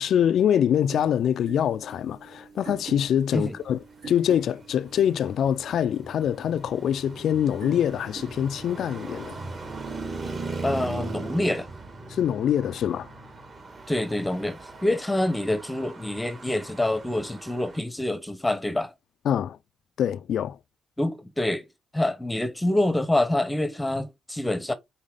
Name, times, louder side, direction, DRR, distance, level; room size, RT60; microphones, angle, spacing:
voice 1, 0.0-9.4 12.1-13.1 19.2-19.6 20.0-20.6, left 9 dB, 65° left, 0.4 m, -24 dB
sound 1, 0.7-10.3, right 5 dB, 75° right, 4.0 m, -46 dB
Traffic noise roadway noise, 4.1-17.8, right 3 dB, 40° right, 2.4 m, -39 dB
voice 2, 10.6-11.7 13.9-18.9 21.0-21.6 21.9-24.7, left 1 dB, 10° left, 0.8 m, -26 dB
5.5 x 4.1 x 4.9 m
cardioid pair, 90°, 0 cm